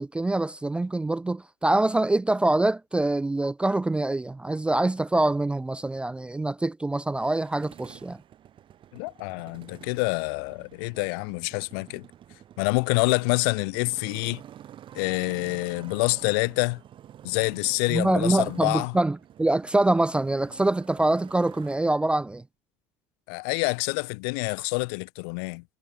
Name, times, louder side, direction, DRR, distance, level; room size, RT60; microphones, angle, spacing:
voice 1, 0.0-8.2 17.9-22.4, right 2 dB, 10° right, 0.3 m, -25 dB
Motorcycle, 7.1-21.8, right 11 dB, 45° right, 5.3 m, -49 dB
voice 2, 8.9-12.1 12.6-14.4 15.0-16.8 17.2-18.9 23.3-25.6, left 34 dB, 80° left, 1.9 m, -27 dB
supercardioid pair, 115°, 12 cm